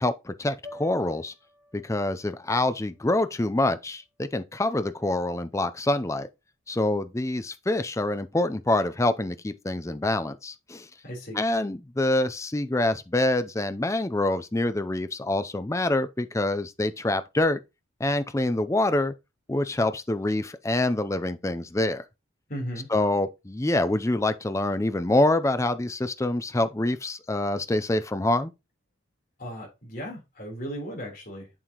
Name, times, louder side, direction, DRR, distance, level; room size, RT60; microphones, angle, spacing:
voice 1, 0.0-1.3 1.7-6.3 6.7-10.9 11.4-17.6 18.0-19.1 19.5-22.0 22.9-28.5, left 2 dB, 15° left, 0.5 m, -26 dB
sound 1, 0.6-4.9, left 1 dB, 10° right, 3.3 m, -51 dB
voice 2, 11.0-11.4 22.5-22.9 29.4-31.5, equal, 45° left, 3.6 m, -36 dB
7.4 x 7.0 x 3.0 m
head